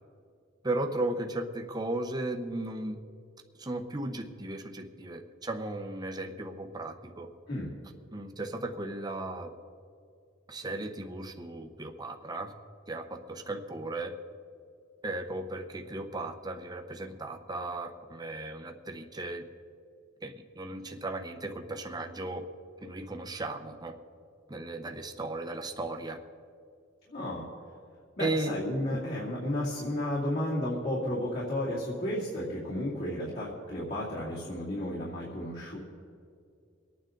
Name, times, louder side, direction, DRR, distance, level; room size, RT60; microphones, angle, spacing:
voice 1, 0.6-3.0 3.6-7.3 8.1-9.5 10.5-12.5 12.9-14.1 15.0-19.4 20.2-22.4 22.8-23.9 24.5-26.2 28.2-28.5, right 2 dB, 20° right, 4 dB, 0.8 m, -36 dB
voice 2, 27.1-27.5 27.7-27.9 28.2-35.8, left 1 dB, 50° left, -7 dB, 2.7 m, -33 dB
24.5 x 9.2 x 3.8 m, 2.3 s
head